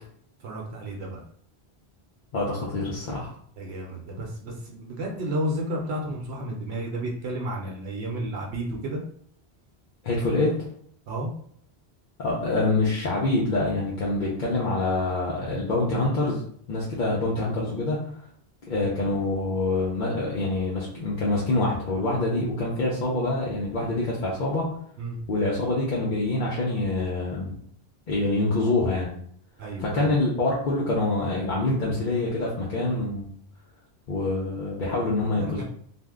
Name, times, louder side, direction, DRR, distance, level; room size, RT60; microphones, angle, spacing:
voice 1, 0.4-1.2 3.6-9.0 11.1-11.3 25.0-25.2 29.6-30.1 34.8-35.6, right 1 dB, 80° right, 0 dB, 0.9 m, -32 dB
voice 2, 2.3-3.3 10.0-10.5 12.2-16.4 16.7-18.0 18.7-24.7 25.3-27.5 28.1-29.1 29.8-33.3 34.1-35.6, left 2 dB, 55° left, -5 dB, 0.7 m, -25 dB
2.6 x 2.0 x 3.5 m, 0.62 s
omnidirectional pair, 1.1 m